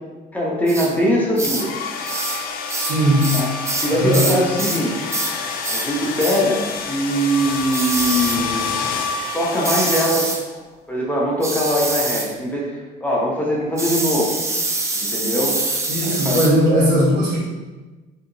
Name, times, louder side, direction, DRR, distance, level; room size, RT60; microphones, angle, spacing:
voice 1, 0.3-1.8 3.3-3.5 3.8-5.0 5.7-8.6 9.3-10.4 10.9-14.4 14.9-15.6 16.0-16.4, equal, 10° left, -5 dB, 0.7 m, -21 dB
sound 1, 0.7-0.9 1.4-1.7 2.1-2.4 2.7-4.8 5.1-5.4 5.6-5.9 6.2-6.4 7.7-8.4 9.6-10.4 11.4-12.3 13.8-16.5, right 2 dB, 15° right, 0.3 m, -25 dB
sound 2, 1.4-10.6, left 5 dB, 60° left, 0.4 m, -28 dB
voice 2, 2.8-3.3 3.9-4.3 15.9-17.4, equal, 85° right, -7 dB, 1.2 m, -18 dB
2.8 x 2.7 x 2.5 m, 1.2 s
cardioid pair, 110°, 17 cm